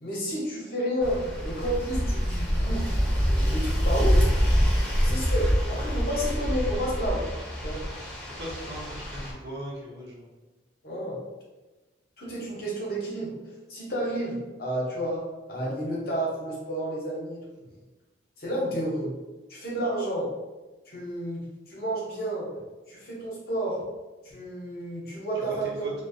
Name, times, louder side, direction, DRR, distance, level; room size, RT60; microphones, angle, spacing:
voice 1, 0.0-4.2 5.0-7.2 7.6-7.8 10.8-11.2 12.2-13.3 13.7-17.4 18.4-19.1 19.5-20.3 20.9-22.5 22.9-23.8 24.2-25.9, right 1 dB, 55° left, -4 dB, 0.7 m, -31 dB
sound 1, 1.0-9.3, equal, 5° left, 0.6 m, -26 dB
voice 2, 8.4-10.3 25.3-25.9, equal, 60° right, -4 dB, 0.7 m, -39 dB
2.4 x 2.1 x 2.5 m, 1.2 s
head